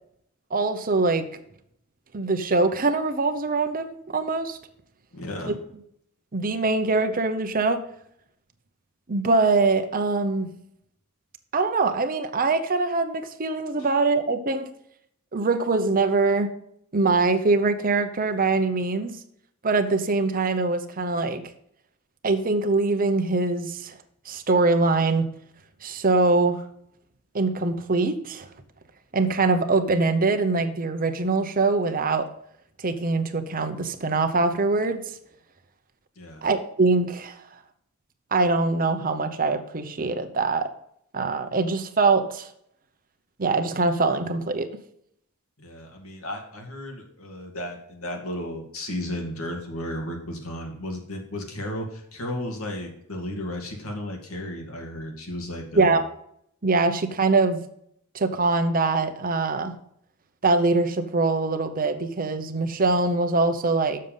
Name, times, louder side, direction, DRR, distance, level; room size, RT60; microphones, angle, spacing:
voice 1, 0.5-1.3 2.1-4.6 5.5-5.6 6.3-7.8 9.1-10.5 11.5-14.7 15.3-16.5 16.9-19.2 19.6-21.4 22.2-24.0 24.3-25.2 25.8-26.6 27.3-28.5 29.1-32.2 32.8-35.2 36.4-37.4 38.3-40.7 41.1-42.5 43.4-44.7 55.8-56.0 56.6-57.6 58.1-59.7 60.4-64.0, right 3 dB, 40° right, 8 dB, 0.8 m, -23 dB
voice 2, 5.1-5.5 36.2-36.4 45.6-56.0, left 1 dB, 80° left, 2 dB, 2.3 m, -34 dB
7.1 x 6.6 x 5.5 m, 0.71 s
head